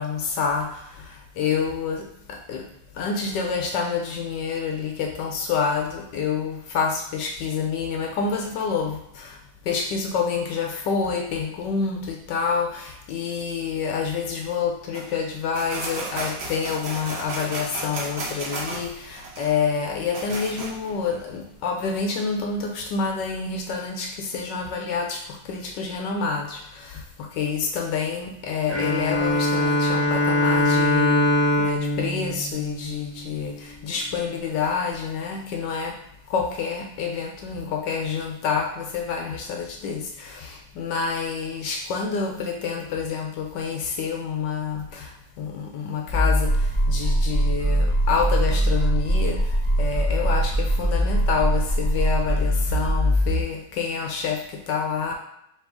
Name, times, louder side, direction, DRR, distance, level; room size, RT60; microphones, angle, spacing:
voice 1, 0.0-2.6 3.0-9.4 9.7-25.2 25.5-31.3 31.6-35.9 36.3-45.1 45.4-55.1, left 5 dB, 75° left, 1 dB, 1.1 m, -28 dB
sound 1, 14.9-21.5, right 2 dB, 85° right, 0.5 m, -34 dB
Bowed string instrument, 28.7-33.4, left 1 dB, 25° right, 1.5 m, -22 dB
sound 2, 46.1-53.4, equal, 10° left, 0.5 m, -22 dB
4.3 x 3.0 x 3.4 m, 0.78 s
omnidirectional pair, 2.1 m